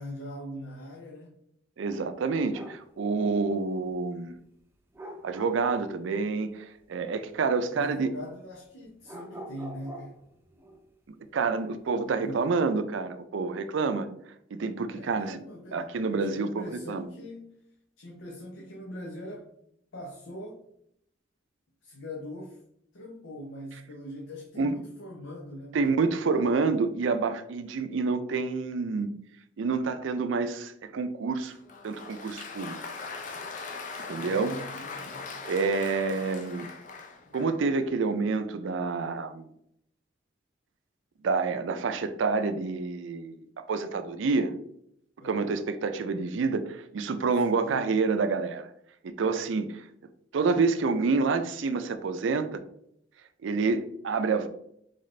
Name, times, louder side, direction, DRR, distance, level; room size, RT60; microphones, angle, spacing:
voice 1, 0.0-1.3 7.7-10.1 12.0-12.5 14.9-17.6 18.0-19.5 19.9-20.7 21.8-22.6 22.9-26.7 34.1-35.3 45.2-45.4 47.6-47.9, left 1 dB, 85° left, -2 dB, 0.8 m, -42 dB
voice 2, 1.8-4.4 5.2-8.1 11.1-14.1 14.5-15.4 15.7-17.1 24.6-24.8 25.7-29.1 29.6-31.5 31.8-32.8 34.1-34.5 35.4-36.7 37.3-39.5 41.2-44.5 45.2-48.7 49.0-49.8 50.3-52.6 53.4-54.5, right 4 dB, 80° right, 10 dB, 0.4 m, -28 dB
sound 1, 2.4-2.9 4.9-6.0 9.0-10.9, right 1 dB, 10° right, 0.5 m, -44 dB
Applause, 31.5-37.6, left 4 dB, 40° left, 0.6 m, -40 dB
4.0 x 3.6 x 3.2 m, 0.73 s
head